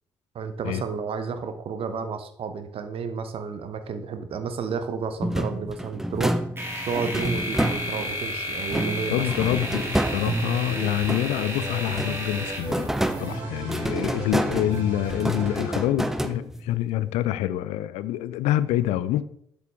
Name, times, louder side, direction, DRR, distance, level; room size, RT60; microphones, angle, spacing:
voice 1, 0.3-6.4 6.9-9.2, right 5 dB, 50° right, 1.0 m, -31 dB
sound 1, 5.2-8.2 8.7-11.5 11.9-16.8, right 1 dB, 5° right, 0.7 m, -29 dB
sound 2, 6.6-13.3, equal, 20° right, 1.9 m, -33 dB
voice 2, 9.1-12.9 13.2-19.2, left 13 dB, 60° left, 0.4 m, -26 dB
sound 3, 9.2-15.8, right 2 dB, 65° right, 2.6 m, -37 dB
8.0 x 7.0 x 3.6 m
figure-of-eight pair, 45°, 12 cm